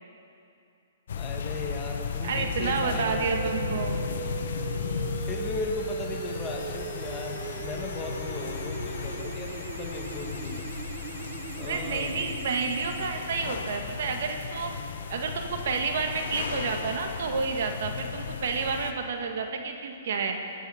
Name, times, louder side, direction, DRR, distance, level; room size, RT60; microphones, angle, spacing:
sound 1, 1.1-18.9, left 6 dB, 65° left, 1.1 m, -35 dB
voice 1, 1.1-3.7 5.3-10.7 11.6-12.2, left 3 dB, 20° left, 0 dB, 1.8 m, -37 dB
voice 2, 2.2-4.0 11.6-14.7 15.1-20.4, right 5 dB, 65° right, 4 dB, 1.6 m, -30 dB
sound 2, 3.1-13.1, right 10 dB, 40° right, 0.6 m, -39 dB
19.5 x 8.6 x 5.6 m, 2.6 s
hypercardioid pair, 135°, 0 cm